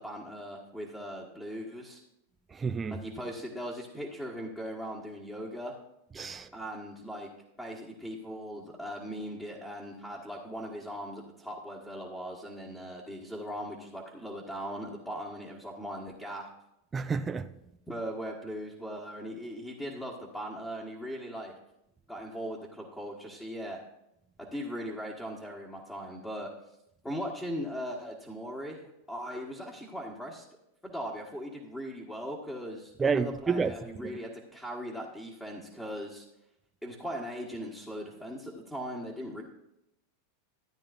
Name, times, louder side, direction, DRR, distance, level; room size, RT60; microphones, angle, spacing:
voice 1, 0.0-2.0 2.9-5.7 6.5-7.3 7.6-16.5 17.9-21.5 22.1-23.8 24.4-26.5 27.0-30.4 30.8-36.3 36.8-39.4, equal, 10° left, 1.5 m, -39 dB
voice 2, 2.5-3.0 6.2-6.5 16.9-17.5 33.0-33.7 34.0-34.2, right 5 dB, 20° right, 0.4 m, -30 dB
14.0 x 9.1 x 2.6 m
hypercardioid pair, 115°, 0 cm